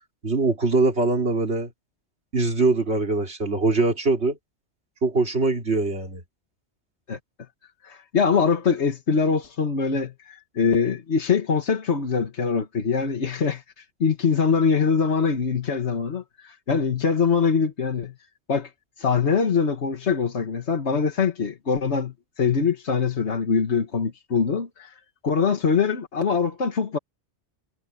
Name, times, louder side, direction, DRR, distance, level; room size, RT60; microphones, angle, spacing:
voice 1, 0.2-1.7 2.3-4.4 5.0-6.2, right 3 dB, 70° right, 3.3 m, -22 dB
voice 2, 7.8-18.1 18.5-18.7 19.0-27.0, left 5 dB, 80° left, 1.8 m, -23 dB
omnidirectional pair, 1.1 m